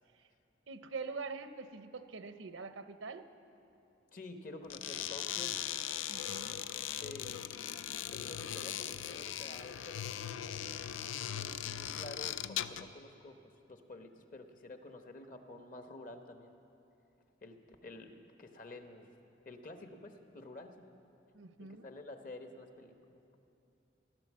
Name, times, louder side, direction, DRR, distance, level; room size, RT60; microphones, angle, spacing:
voice 1, 0.7-3.3 6.1-6.6 21.3-21.9, right 4 dB, 80° right, 10 dB, 0.8 m, -44 dB
voice 2, 4.1-5.6 6.7-7.5 8.1-10.8 11.3-16.5 17.4-19.1 19.4-20.9 21.6-23.2, left 2 dB, 45° left, 6 dB, 1.0 m, -50 dB
sound 1, 4.6-12.9, left 10 dB, 80° left, 0.5 m, -39 dB
16.5 x 12.0 x 7.4 m, 2.7 s
head